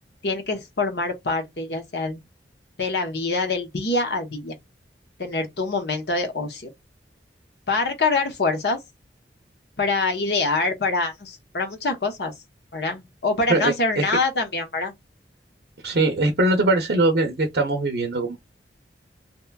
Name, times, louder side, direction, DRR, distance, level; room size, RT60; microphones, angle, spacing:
voice 1, 0.2-2.2 2.8-4.5 5.2-6.7 7.7-8.8 9.8-12.3 12.7-14.9, left 3 dB, 65° left, 0.8 m, -25 dB
voice 2, 13.5-14.0 15.8-18.4, right 2 dB, 60° right, 0.5 m, -21 dB
2.9 x 2.2 x 2.2 m
head